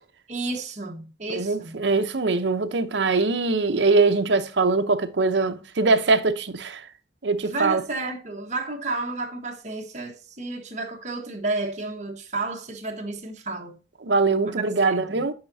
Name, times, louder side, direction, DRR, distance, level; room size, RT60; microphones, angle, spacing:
voice 1, 0.3-1.8 7.4-13.8 14.4-14.5 14.8-15.2, right 3 dB, 40° right, 1.3 m, -31 dB
voice 2, 1.3-6.8 7.2-7.8 14.0-15.3, right 3 dB, 75° right, 0.8 m, -22 dB
8.9 x 5.6 x 2.7 m
head